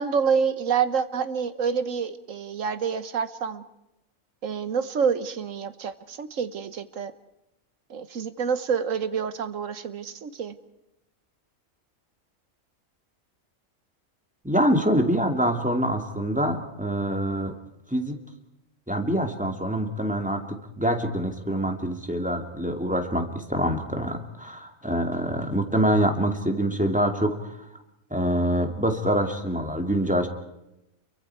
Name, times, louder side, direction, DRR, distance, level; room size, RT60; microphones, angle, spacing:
voice 1, 0.0-3.6 4.4-7.1 7.9-10.5, right 6 dB, 65° right, 12 dB, 1.5 m, -27 dB
voice 2, 14.4-17.5 17.9-18.2 18.9-27.6 28.1-30.3, equal, 5° right, 4 dB, 2.2 m, -25 dB
28.5 x 23.5 x 4.6 m, 0.89 s
omnidirectional pair, 1.5 m